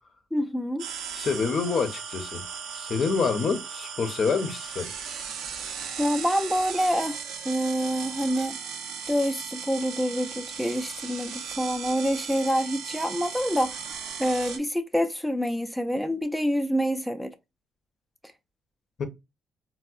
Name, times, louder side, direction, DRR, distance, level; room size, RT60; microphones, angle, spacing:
voice 1, 0.3-0.9 6.0-7.2 7.4-8.6 9.1-17.3, equal, ahead, 0.4 m, -27 dB
sound 1, 0.8-14.6, right 7 dB, 90° right, 0.6 m, -37 dB
voice 2, 1.1-2.5 2.7-4.9 19.0-19.1, left 5 dB, 50° left, 0.6 m, -27 dB
4.4 x 2.1 x 2.3 m
cardioid pair, 90°, 0 cm